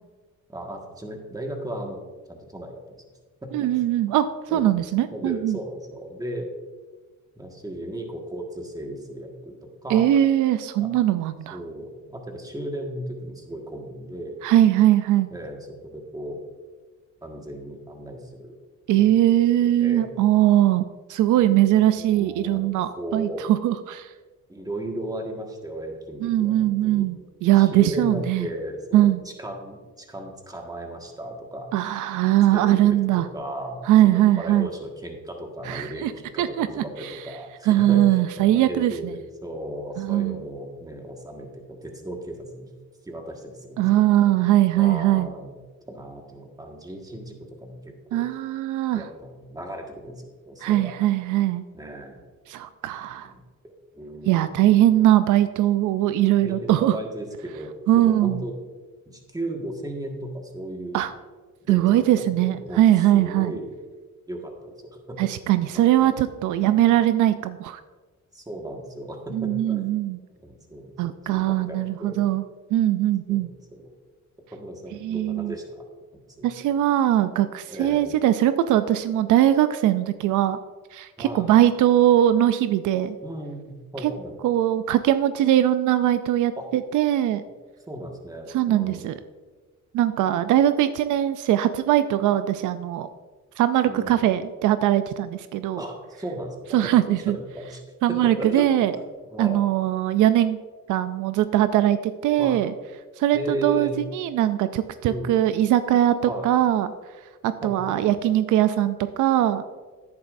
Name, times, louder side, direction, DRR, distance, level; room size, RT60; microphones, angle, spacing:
voice 1, 0.5-2.0 2.3-3.0 3.4-3.8 4.5-4.8 5.1-6.5 7.3-10.2 10.8-10.9 11.5-14.4 15.3-16.4 17.2-18.6 18.9-19.1 19.6-20.2 21.3-23.5 24.5-27.1 27.6-29.1 29.4-31.7 32.5-42.7 43.0-44.0 44.7-45.5 45.8-48.2 48.9-50.9 51.7-52.2 52.9-54.6 56.4-58.6 59.1-61.0 61.6-63.7 64.3-65.3 65.7-66.1 66.6-66.9 68.3-69.9 70.3-71.0 71.3-72.2 73.3-73.9 74.5-75.8 76.1-76.5 77.7-78.2 81.2-81.6 83.2-84.4 86.6-86.7 87.9-89.1 93.9-94.3 95.8-98.7 99.3-99.6 102.4-102.6 103.3-104.0 105.0-105.4 106.3-106.5 107.6-108.2, right 1 dB, 10° right, 2 dB, 1.7 m, -36 dB
voice 2, 3.5-5.6 9.9-11.6 14.4-15.3 18.9-24.1 26.2-28.5 28.9-29.2 31.7-33.3 33.9-34.7 35.6-36.1 36.4-37.2 37.7-38.9 40.0-40.4 43.8-45.3 48.1-49.0 50.6-51.7 52.5-53.3 54.3-57.0 57.9-58.4 60.9-61.1 61.7-63.5 65.2-67.8 69.3-70.2 71.0-72.4 72.7-73.5 75.0-75.5 76.4-80.6 80.9-83.2 84.4-87.4 88.5-89.1 89.9-93.1 93.6-95.8 96.7-97.4 98.0-98.9 99.4-100.6 100.9-102.7 103.2-106.2 106.4-106.9 107.4-109.6, right 13 dB, 80° right, 12 dB, 0.5 m, -21 dB
10.5 x 9.6 x 2.6 m, 1.3 s
cardioid pair, 90°, 30 cm